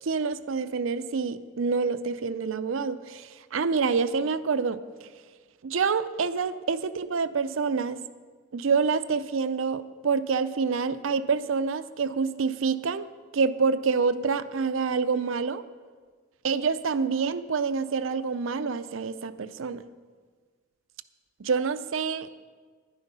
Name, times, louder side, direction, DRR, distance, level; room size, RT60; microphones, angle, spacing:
voice 1, 0.0-4.8 5.6-8.0 8.5-15.6 16.4-19.8 21.4-22.3, right 5 dB, 75° right, 13 dB, 0.5 m, -27 dB
12.0 x 10.5 x 5.5 m, 1.5 s
head